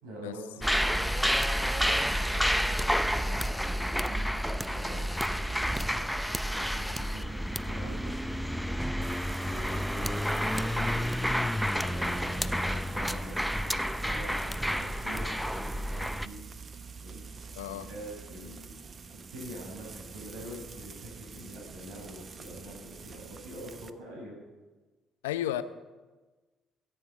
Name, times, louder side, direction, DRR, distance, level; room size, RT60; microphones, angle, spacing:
voice 1, 0.0-3.4 4.0-6.0 6.5-8.8 9.4-10.9 11.7-16.5 17.0-18.7 19.1-24.4, right 1 dB, 75° right, -4 dB, 5.7 m, -45 dB
sound 1, 0.6-16.3, equal, ahead, 0.7 m, -30 dB
Frying (food), 9.0-23.9, right 5 dB, 45° right, 0.9 m, -47 dB
voice 2, 17.6-17.9 25.2-25.6, left 12 dB, 90° left, 12 dB, 0.6 m, -32 dB
22.0 x 8.9 x 4.4 m, 1.2 s
hypercardioid pair, 50°, 0 cm